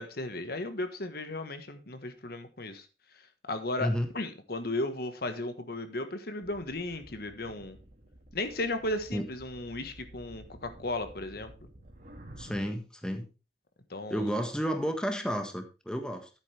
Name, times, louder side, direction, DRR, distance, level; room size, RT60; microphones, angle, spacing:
voice 1, 0.0-2.9 3.5-3.9 4.1-7.8 8.3-11.5 13.9-14.4, left 2 dB, 60° left, 8 dB, 1.4 m, -35 dB
sound 1, 6.4-12.7, right 1 dB, 50° right, 2.5 m, -51 dB
voice 2, 12.4-13.2 14.1-16.3, equal, 5° left, 5 dB, 1.4 m, -31 dB
11.0 x 9.0 x 3.4 m, 0.30 s
head